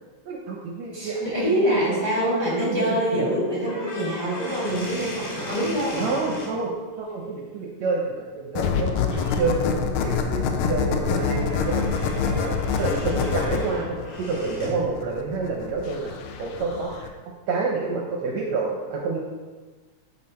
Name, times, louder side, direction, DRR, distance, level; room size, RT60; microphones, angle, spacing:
voice 1, 0.2-1.5 1.9-3.0 6.0-6.7 7.0-17.1 17.5-19.2, right 4 dB, 75° right, -1 dB, 1.8 m, -28 dB
voice 2, 0.9-6.0, equal, 10° left, -7 dB, 1.7 m, -25 dB
sound 1, 3.6-6.5 8.6-8.8 9.1-9.4 9.9-14.8, left 1 dB, 60° left, 3.1 m, -37 dB
sound 2, 8.6-17.1, left 6 dB, 90° left, 2.2 m, -26 dB
8.5 x 4.1 x 4.2 m, 1.3 s
omnidirectional pair, 3.6 m